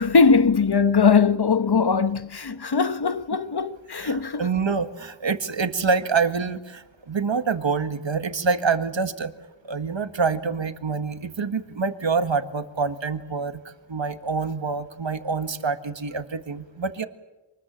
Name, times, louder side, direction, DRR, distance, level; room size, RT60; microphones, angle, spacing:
voice 1, 0.0-4.5, left 5 dB, 60° left, 1.2 m, -20 dB
voice 2, 4.0-9.3 9.6-17.1, right 5 dB, 80° right, 1.8 m, -26 dB
27.0 x 21.0 x 7.5 m
wide cardioid pair, 60°, 44 cm